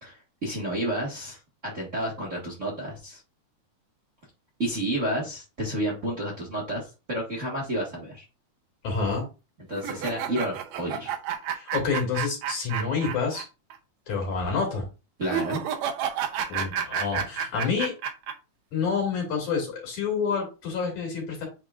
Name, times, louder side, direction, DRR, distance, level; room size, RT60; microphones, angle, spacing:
voice 1, 0.0-3.2 4.6-8.2 9.7-11.1 15.2-15.6, right 1 dB, 35° right, -2 dB, 1.4 m, -31 dB
voice 2, 8.8-9.3 11.5-13.5 14.1-14.9 16.5-17.9 18.7-21.5, left 5 dB, 70° left, 0 dB, 3.9 m, -28 dB
sound 1, 9.8-13.4 13.7-13.8 15.2-18.3, right 8 dB, 70° right, 1.8 m, -30 dB
9.1 x 4.3 x 2.4 m, 0.30 s
omnidirectional pair, 3.5 m